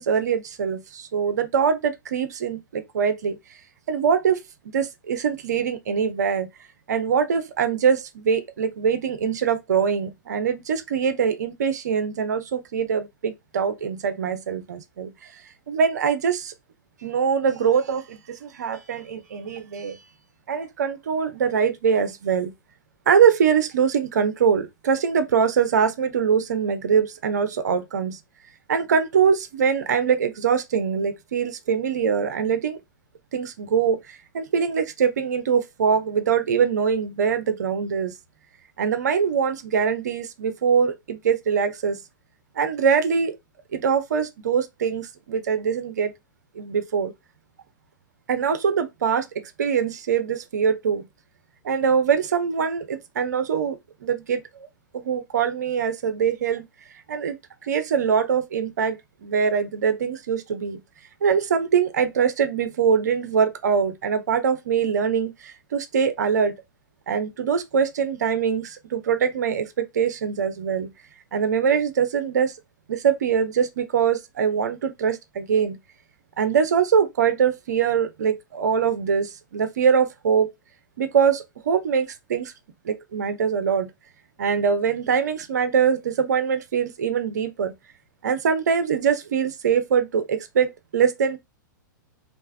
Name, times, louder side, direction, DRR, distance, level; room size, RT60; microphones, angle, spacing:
voice 1, 0.0-3.4 3.9-4.4 4.7-6.5 6.9-15.4 15.7-16.5 17.0-20.0 20.5-22.5 23.1-28.2 28.7-32.8 33.3-38.1 38.8-42.0 42.6-43.4 43.7-46.1 46.5-47.1 48.3-49.3 49.6-51.1 51.6-54.7 54.9-56.6 57.1-57.4 57.6-60.8 61.2-66.5 67.1-70.9 71.3-72.5 72.9-75.8 76.4-80.5 81.0-82.5 82.8-83.9 84.4-87.7 88.2-91.4, right 7 dB, 55° right, 0.7 m, -23 dB
3.4 x 2.5 x 3.3 m
figure-of-eight pair, 105°, 11 cm